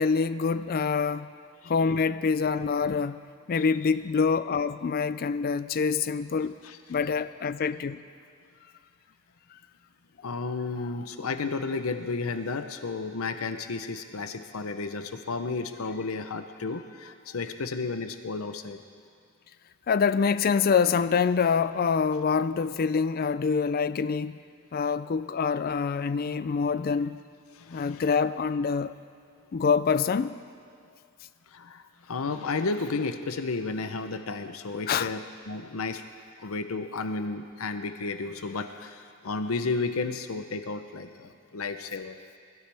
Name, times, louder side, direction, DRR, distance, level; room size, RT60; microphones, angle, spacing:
voice 1, 0.0-1.3 1.7-3.2 3.5-6.5 6.9-8.0 10.8-10.9 19.9-24.4 24.7-27.2 27.7-28.9 29.5-30.4 34.9-35.1, left 5 dB, 45° left, 0.4 m, -25 dB
voice 2, 10.2-18.8 27.5-28.0 31.5-36.0 36.4-42.2, left 3 dB, 75° left, 0.7 m, -33 dB
22.0 x 13.0 x 3.4 m
head